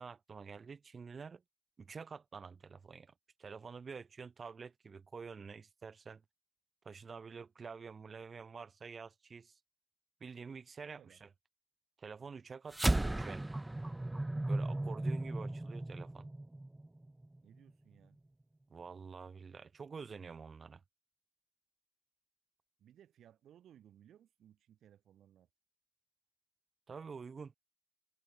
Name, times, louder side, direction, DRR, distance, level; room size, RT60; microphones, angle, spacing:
voice 1, 0.0-1.4 1.8-3.1 3.4-6.2 6.8-9.6 10.2-11.3 12.0-13.4 14.5-16.3 18.7-20.8 26.9-27.5, right 5 dB, 40° right, 0.7 m, -48 dB
voice 2, 10.8-11.2 17.4-18.2 22.8-25.5, right 10 dB, 75° right, 3.3 m, -62 dB
sound 1, 12.7-17.4, right 1 dB, 15° right, 0.4 m, -35 dB
cardioid pair, 85°, 0 cm